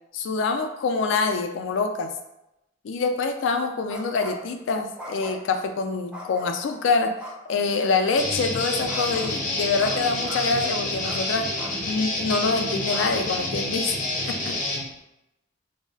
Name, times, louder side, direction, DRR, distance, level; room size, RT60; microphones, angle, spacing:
voice 1, 0.1-2.1 2.8-7.1 7.5-11.5 11.9-14.0 14.2-14.5, left 4 dB, 75° left, 6 dB, 0.3 m, -25 dB
sound 1, 3.9-4.5 5.0-5.6 6.1-6.7 7.2-7.4 8.9-9.3 9.8-10.0 10.2-10.4 11.0-11.2 11.6-11.7 12.2-12.3 12.9-13.0, left 1 dB, 5° right, 0.4 m, -39 dB
Guitar, 8.1-14.9, left 2 dB, 45° left, 0.7 m, -28 dB
2.3 x 2.0 x 3.7 m, 0.88 s
head